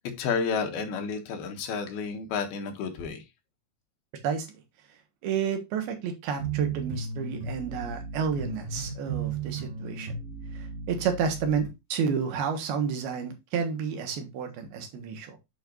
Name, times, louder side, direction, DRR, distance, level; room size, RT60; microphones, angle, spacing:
voice 1, 0.2-3.2, left 5 dB, 80° left, 3.3 m, -31 dB
voice 2, 5.2-10.2 10.5-15.4, right 6 dB, 80° right, 3.4 m, -30 dB
sound 1, 6.4-11.7, right 5 dB, 60° right, 4.4 m, -35 dB
8.7 x 5.8 x 2.5 m
omnidirectional pair, 4.3 m